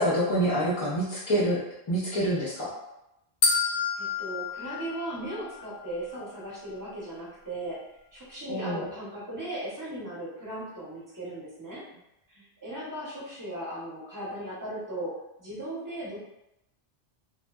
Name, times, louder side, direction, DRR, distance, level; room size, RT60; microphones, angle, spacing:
voice 1, 0.0-1.6 1.9-2.7 8.5-8.9, right 1 dB, 35° left, -8 dB, 0.5 m, -26 dB
sound 1, 3.4-5.7, left 4 dB, 70° left, 0.7 m, -29 dB
voice 2, 4.0-7.8 8.1-11.8 12.3-15.1 15.4-16.2, right 1 dB, 25° right, -7 dB, 0.6 m, -37 dB
2.6 x 2.1 x 2.2 m, 0.86 s
omnidirectional pair, 1.1 m